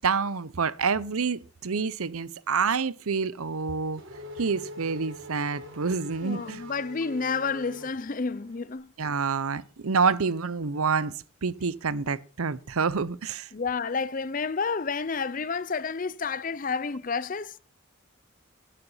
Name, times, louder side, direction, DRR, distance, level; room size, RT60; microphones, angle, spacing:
voice 1, 0.0-4.0 4.4-6.7 9.0-11.1 11.4-13.5, right 5 dB, 90° right, 0.7 m, -27 dB
Race car auto racing / Accelerating revving vroom, 3.4-8.6, left 1 dB, 60° right, 4.1 m, -44 dB
voice 2, 6.2-8.9 13.5-17.6, left 5 dB, 40° left, 0.6 m, -30 dB
11.5 x 9.9 x 5.5 m
head